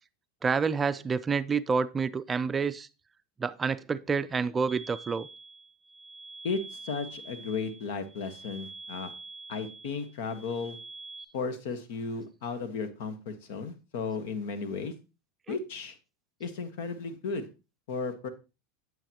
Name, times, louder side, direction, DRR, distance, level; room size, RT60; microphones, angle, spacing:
voice 1, 0.4-2.9 3.4-5.3 15.5-15.6, right 5 dB, 20° right, 0.4 m, -28 dB
sound 1, 4.7-11.2, right 3 dB, 5° left, 1.5 m, -46 dB
voice 2, 6.4-9.1 9.5-10.8 11.3-14.9 15.5-15.9 16.4-17.5 17.9-18.3, left 4 dB, 70° left, 1.3 m, -34 dB
9.0 x 7.7 x 2.9 m
hypercardioid pair, 105°, 0 cm